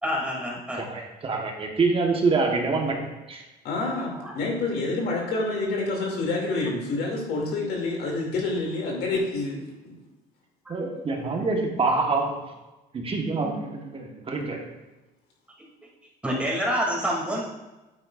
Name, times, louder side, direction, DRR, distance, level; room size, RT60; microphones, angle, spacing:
voice 1, 0.0-0.8 4.2-4.3 16.2-17.4, equal, 5° right, -3 dB, 2.5 m, -27 dB
voice 2, 0.7-3.4 10.7-12.5 12.9-14.7, right 3 dB, 35° right, 2 dB, 1.2 m, -26 dB
voice 3, 3.6-9.6 9.8-9.9, left 2 dB, 75° left, -1 dB, 2.5 m, -28 dB
8.9 x 8.7 x 2.4 m, 1.0 s
cardioid pair, 110°, 17 cm